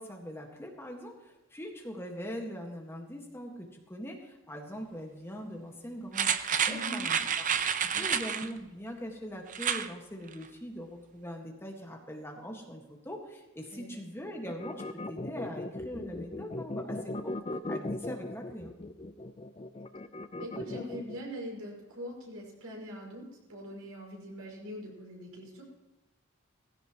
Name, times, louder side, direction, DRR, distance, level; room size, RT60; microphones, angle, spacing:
voice 1, 0.0-17.3 17.7-18.7, equal, 10° left, 1 dB, 1.7 m, -42 dB
sound 1, 6.1-8.5 9.5-9.9 10.3-10.4, right 7 dB, 40° right, 0.7 m, -29 dB
voice 2, 6.7-7.0 7.9-8.1 13.7-13.9 20.4-25.6, equal, 85° right, -2 dB, 5.9 m, -42 dB
sound 2, 14.5-21.2, left 2 dB, 25° left, 0.5 m, -38 dB
18.5 x 16.0 x 3.0 m, 1.0 s
head